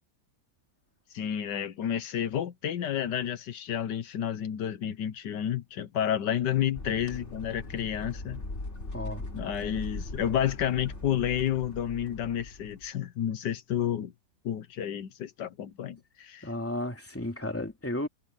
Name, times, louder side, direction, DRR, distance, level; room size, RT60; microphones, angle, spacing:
voice 1, 1.1-8.4 9.3-14.1 14.4-16.5, left 10 dB, 80° left, 1.5 m, -30 dB
sound 1, 6.7-12.9, left 2 dB, 40° left, 3.6 m, -40 dB
voice 2, 8.9-9.2 16.4-18.1, left 1 dB, 10° left, 2.4 m, -33 dB
omnidirectional pair, 1.9 m